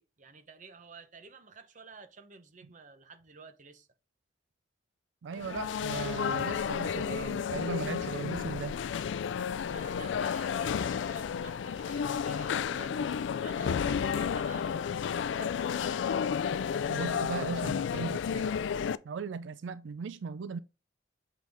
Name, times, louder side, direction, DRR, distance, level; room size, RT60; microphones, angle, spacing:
voice 1, 0.0-3.9 9.7-13.2 13.4-16.1, right 4 dB, 45° right, 0.8 m, -51 dB
voice 2, 5.2-8.8 16.9-18.6 19.0-20.6, right 5 dB, 85° right, 0.4 m, -37 dB
sound 1, 5.3-19.0, left 7 dB, 80° left, 0.3 m, -32 dB
7.3 x 3.9 x 3.5 m
head